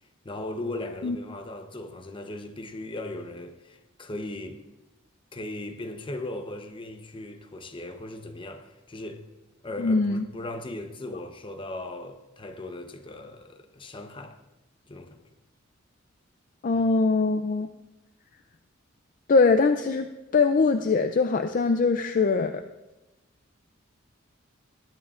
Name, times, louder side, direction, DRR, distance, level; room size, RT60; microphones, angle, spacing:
voice 1, 0.2-4.6 5.3-9.2 9.6-14.4 14.9-15.2, left 2 dB, 25° left, 0.8 m, -38 dB
voice 2, 9.8-10.3 16.6-17.7 19.3-20.1 20.3-22.6, left 4 dB, 40° left, 0.4 m, -22 dB
20.0 x 11.0 x 2.5 m
head